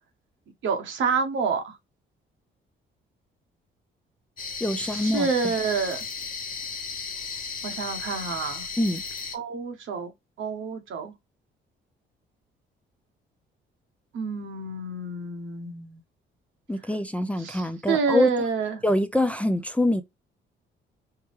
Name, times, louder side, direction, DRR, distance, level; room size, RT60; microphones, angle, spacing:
voice 1, 0.6-1.7 4.8-6.0 7.6-8.6 9.3-10.1 10.4-11.1 14.1-16.0 17.4-18.8, right 4 dB, 75° right, 1.0 m, -28 dB
sound 1, 4.4-9.4, left 5 dB, 45° left, 0.9 m, -35 dB
voice 2, 4.6-5.5 8.8-9.0 16.7-18.3 18.8-20.0, left 1 dB, 5° left, 0.4 m, -25 dB
4.6 x 2.2 x 3.1 m
cardioid pair, 90°, 20 cm